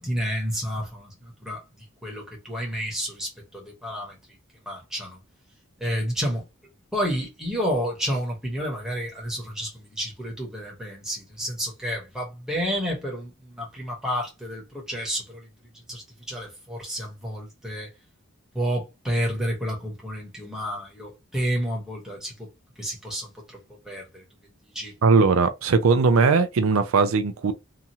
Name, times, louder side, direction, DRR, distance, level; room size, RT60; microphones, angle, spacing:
voice 1, 0.0-1.6 2.0-4.1 4.7-5.2 5.8-6.4 6.9-15.5 15.9-17.9 18.5-22.5 22.8-23.3 23.8-24.2 24.7-24.9, equal, 5° right, 1.0 m, -30 dB
voice 2, 25.0-27.5, right 4 dB, 80° right, 0.4 m, -19 dB
2.8 x 2.4 x 2.8 m
head